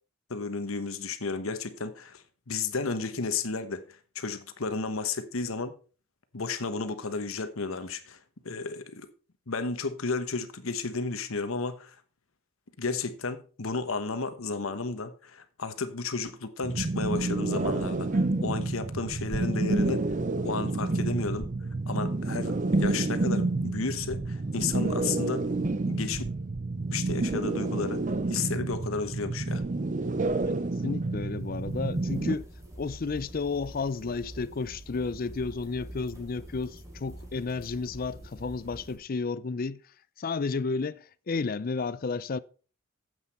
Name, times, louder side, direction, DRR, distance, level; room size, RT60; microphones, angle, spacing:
voice 1, 0.3-3.8 4.1-5.7 6.3-8.2 8.4-9.1 9.5-12.0 12.8-20.1 20.4-21.5 21.9-25.5 25.9-26.2 26.9-28.0 28.3-29.6, left 4 dB, 80° left, 1.1 m, -33 dB
sound 1, 16.6-32.4, right 2 dB, 35° right, 0.6 m, -29 dB
sound 2, 30.7-39.0, right 1 dB, 15° right, 3.3 m, -46 dB
voice 2, 30.8-32.5 32.8-39.8 40.2-42.4, left 4 dB, 45° left, 0.5 m, -32 dB
9.3 x 8.1 x 4.3 m
head